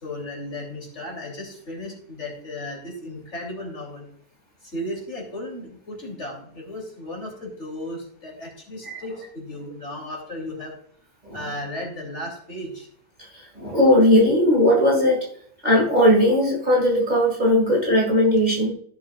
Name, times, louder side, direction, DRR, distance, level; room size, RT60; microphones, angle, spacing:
voice 1, 0.0-4.1 4.6-10.7 11.3-12.9, left 1 dB, 45° left, 0 dB, 3.4 m, -35 dB
voice 2, 13.6-15.2 15.6-18.7, left 1 dB, 25° right, -3 dB, 2.1 m, -18 dB
15.5 x 7.0 x 2.4 m, 0.62 s
omnidirectional pair, 1.7 m